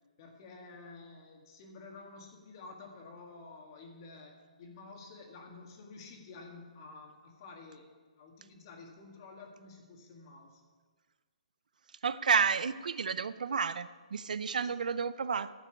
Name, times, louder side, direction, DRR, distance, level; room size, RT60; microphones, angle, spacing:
voice 1, 0.2-7.8 8.2-10.6 14.5-14.6, left 3 dB, 35° left, 1 dB, 1.9 m, -51 dB
voice 2, 12.0-15.5, right 6 dB, 80° right, 15 dB, 0.5 m, -31 dB
12.0 x 6.1 x 8.2 m, 1.5 s
hypercardioid pair, 165°, 4 cm